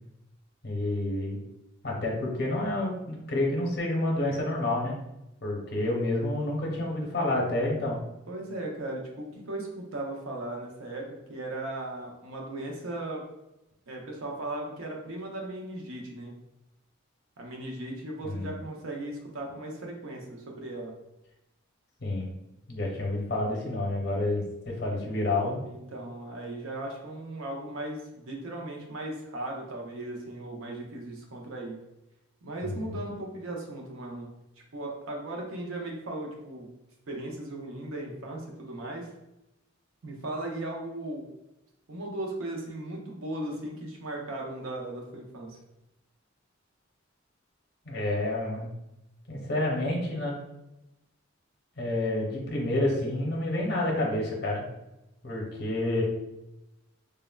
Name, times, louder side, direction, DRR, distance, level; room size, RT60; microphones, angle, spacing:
voice 1, 0.6-1.4 1.8-4.9 5.4-8.0 18.2-18.5 22.0-22.3 22.7-25.6 32.6-33.0 47.9-48.7 49.3-50.4 51.8-54.7 55.2-56.0, left 1 dB, 55° left, -1 dB, 0.7 m, -29 dB
voice 2, 8.3-13.2 13.9-16.3 17.4-20.9 25.6-31.8 32.4-34.3 34.7-36.7 37.1-39.1 40.0-41.3 41.9-45.6, right 1 dB, 85° right, 0 dB, 0.6 m, -37 dB
3.4 x 2.0 x 2.2 m, 0.91 s
head